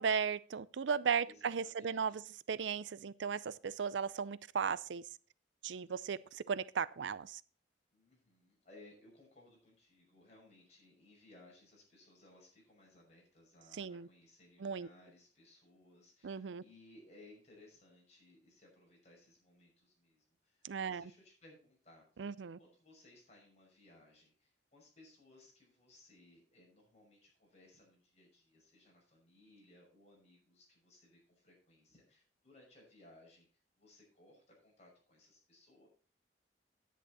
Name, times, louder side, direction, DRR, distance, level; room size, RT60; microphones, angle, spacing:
voice 1, 0.0-5.0 5.6-7.4 13.7-14.1 14.6-14.9 16.2-16.6 20.6-21.1 22.2-22.6, right 6 dB, 85° right, 0.5 m, -36 dB
voice 2, 1.2-2.2 5.9-6.0 7.9-33.4 33.8-35.9, left 2 dB, 40° left, 5.9 m, -62 dB
10.0 x 9.2 x 4.1 m
head